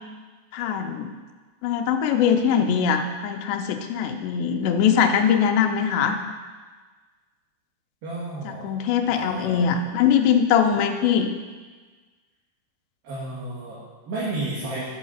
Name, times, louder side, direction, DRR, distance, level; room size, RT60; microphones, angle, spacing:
voice 1, 0.5-1.1 1.6-6.2 8.5-11.3, left 7 dB, 90° left, 5 dB, 2.9 m, -22 dB
voice 2, 8.0-8.8 9.1-9.9 13.0-14.9, right 2 dB, 60° right, -8 dB, 3.6 m, -32 dB
12.0 x 4.7 x 6.7 m, 1.4 s
omnidirectional pair, 4.9 m